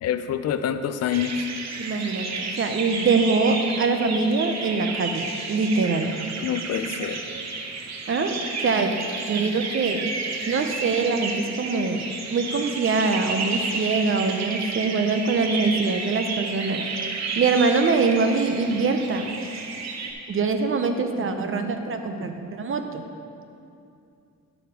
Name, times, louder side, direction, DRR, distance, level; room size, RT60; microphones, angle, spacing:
voice 1, 0.0-1.5 6.4-7.2, left 9 dB, 55° left, 10 dB, 0.5 m, -26 dB
sound 1, 1.1-20.1, right 4 dB, 60° right, 0.9 m, -32 dB
voice 2, 1.8-6.1 8.1-8.3 8.6-8.9 9.3-10.0 10.5-16.8 17.4-19.3 20.3-23.0, right 4 dB, 45° right, 6 dB, 0.7 m, -23 dB
10.5 x 5.0 x 4.7 m, 2.6 s
cardioid pair, 90°, 30 cm